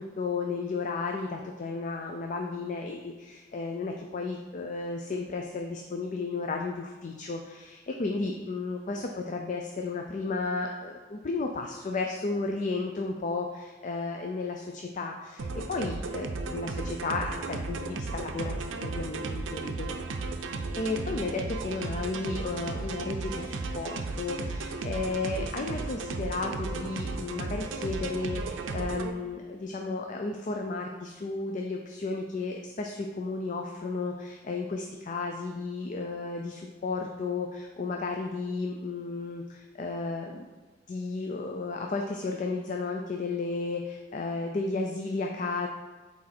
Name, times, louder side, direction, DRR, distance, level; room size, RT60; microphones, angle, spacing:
voice 1, 0.0-19.9 20.8-40.5 40.9-45.7, left 3 dB, 40° left, 2 dB, 0.4 m, -33 dB
sound 1, 15.4-29.1, right 3 dB, 90° right, 0.5 m, -35 dB
6.2 x 4.2 x 4.3 m, 1.2 s
head